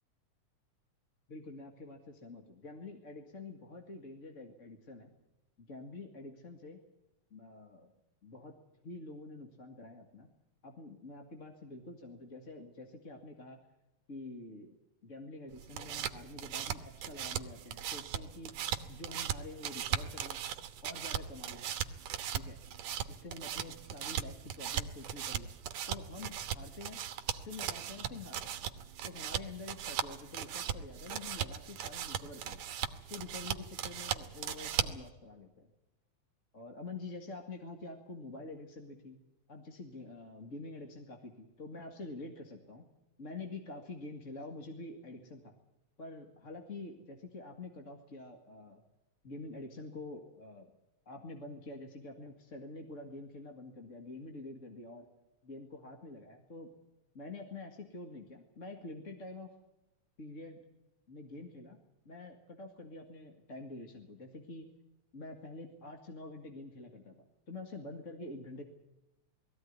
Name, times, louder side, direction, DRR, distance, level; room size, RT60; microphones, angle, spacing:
voice 1, 1.3-5.1 5.6-6.9 7.3-7.9 8.2-8.5 8.8-10.3 10.6-13.6 14.1-14.8 15.0-18.5 18.9-20.4 20.8-21.7 22.3-22.6 23.1-25.5 25.9-27.1 27.4-28.7 29.0-32.7 33.1-35.7 36.5-39.2 39.5-42.9 43.2-45.5 46.0-48.8 49.2-50.7 51.1-55.1 55.4-56.7 57.1-59.5 60.2-60.6 61.1-61.8 62.1-64.7 65.1-67.2 67.5-68.6, left 2 dB, 30° left, 3 dB, 1.9 m, -47 dB
sound 1, 15.5-35.1, right 9 dB, 65° right, 2.2 m, -38 dB
21.0 x 15.0 x 9.5 m, 0.97 s
omnidirectional pair, 3.5 m